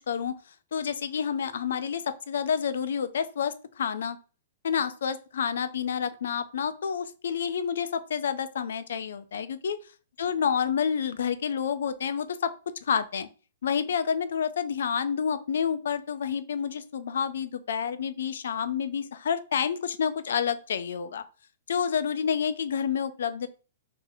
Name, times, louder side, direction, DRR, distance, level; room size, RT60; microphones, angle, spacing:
voice 1, 0.7-4.2 4.6-9.8 10.2-12.5 12.8-13.3 13.6-21.2 21.7-23.5, left 7 dB, 75° left, 12 dB, 0.3 m, -29 dB
2.7 x 2.6 x 4.0 m, 0.36 s
hypercardioid pair, 175°, 0 cm